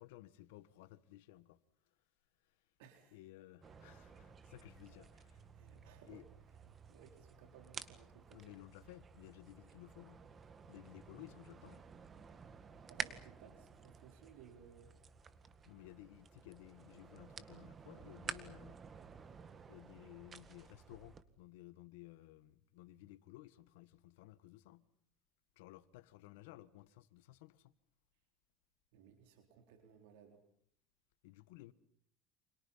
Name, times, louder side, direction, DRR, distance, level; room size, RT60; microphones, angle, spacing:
voice 1, 0.0-2.0 2.4-2.7 3.1-5.5 6.1-6.2 8.3-10.2 10.7-11.9 15.6-18.9 19.7-24.9 25.5-27.7 31.2-31.7, left 16 dB, 85° left, 1.5 m, -57 dB
voice 2, 2.8-3.2 4.9-5.2 5.5-6.2 6.7-8.5 12.9-14.9 28.9-30.4, right 8 dB, 85° right, 3.9 m, -60 dB
sound 1, 3.6-21.2, right 6 dB, 30° right, 1.9 m, -52 dB
30.0 x 27.5 x 5.7 m
supercardioid pair, 110°, 0 cm